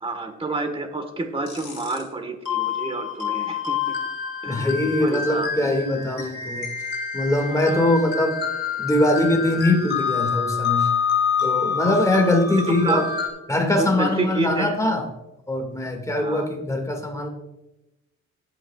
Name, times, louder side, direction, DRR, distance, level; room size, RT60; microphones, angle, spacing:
voice 1, 0.0-3.9 4.4-4.7 5.0-5.5 6.2-6.3 7.5-7.8 11.8-12.2 12.5-13.0 13.8-14.7 16.2-16.5, right 3 dB, 20° right, 6 dB, 1.4 m, -29 dB
sound 1, 1.5-2.0 2.5-13.3, left 7 dB, 35° left, 3.2 m, -27 dB
voice 2, 4.5-6.7 7.1-8.4 8.8-10.9 11.4-13.1 13.5-15.0 15.5-17.3, left 1 dB, 10° left, 2 dB, 2.0 m, -22 dB
18.5 x 8.7 x 2.4 m, 0.96 s
cardioid pair, 100°, 29 cm